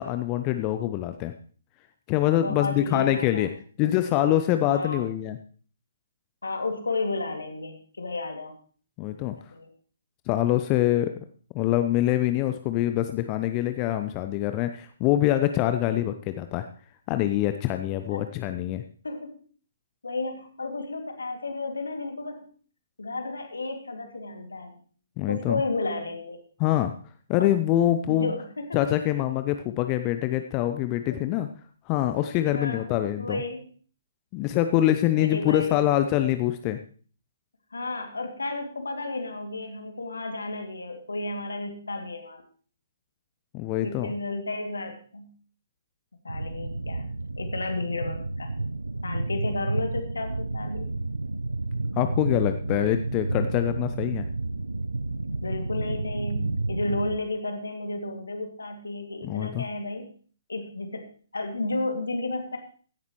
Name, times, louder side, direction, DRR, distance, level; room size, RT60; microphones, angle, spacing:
voice 1, 0.0-1.3 2.1-3.5 3.8-5.4 9.0-9.4 10.3-11.1 11.5-16.7 17.1-18.8 25.2-25.6 26.6-26.9 27.3-28.3 28.7-31.5 31.9-33.4 34.3-36.8 43.5-44.1 52.0-54.2 59.2-59.6, left 13 dB, 25° left, 9 dB, 0.7 m, -25 dB
voice 2, 2.4-3.5 4.7-5.0 6.4-8.6 9.4-9.7 18.1-18.2 19.0-19.4 20.0-22.5 23.0-24.8 25.3-26.4 27.4-27.5 28.1-28.8 31.1-31.2 32.5-32.8 33.2-33.7 35.2-35.8 37.7-42.4 43.8-45.3 46.2-47.1 47.4-48.5 49.0-51.0 55.4-60.1 60.5-61.0 61.3-62.6, left 2 dB, 70° left, 4 dB, 2.5 m, -32 dB
sound 1, 46.3-57.2, right 2 dB, 75° right, 0.6 m, -31 dB
16.0 x 11.0 x 3.2 m, 0.43 s
figure-of-eight pair, 130°, 0 cm